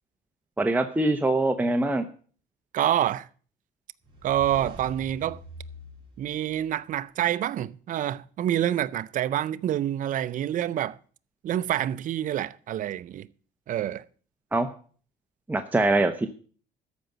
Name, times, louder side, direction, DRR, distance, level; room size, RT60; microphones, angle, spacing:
voice 1, 0.6-2.1 14.5-14.7 15.5-16.3, right 2 dB, 10° right, 0.8 m, -23 dB
voice 2, 2.7-3.3 4.2-5.4 6.2-11.0 11.4-13.3 13.7-14.0, right 11 dB, 50° right, 0.5 m, -27 dB
sound 1, 4.0-7.0, right 1 dB, 25° right, 5.1 m, -44 dB
13.5 x 5.2 x 7.8 m
cardioid pair, 110°, 17 cm